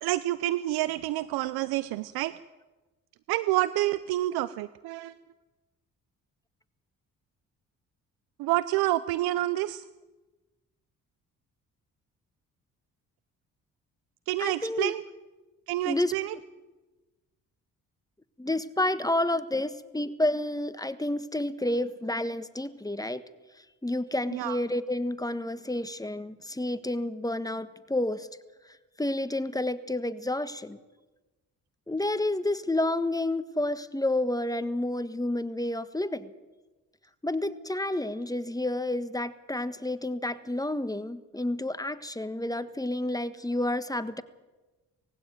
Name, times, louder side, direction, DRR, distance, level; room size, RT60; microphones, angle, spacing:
voice 1, 0.0-2.3 3.3-5.1 8.4-9.8 14.3-15.0 15.7-16.3 24.3-24.6, right 16 dB, 80° right, 16 dB, 0.6 m, -28 dB
voice 2, 14.4-14.9 15.8-16.1 18.4-23.2 23.8-28.3 29.0-30.8 31.9-36.3 37.2-44.2, left 1 dB, 10° left, 12 dB, 1.5 m, -30 dB
20.0 x 16.0 x 9.2 m, 1.2 s
supercardioid pair, 60°, 37 cm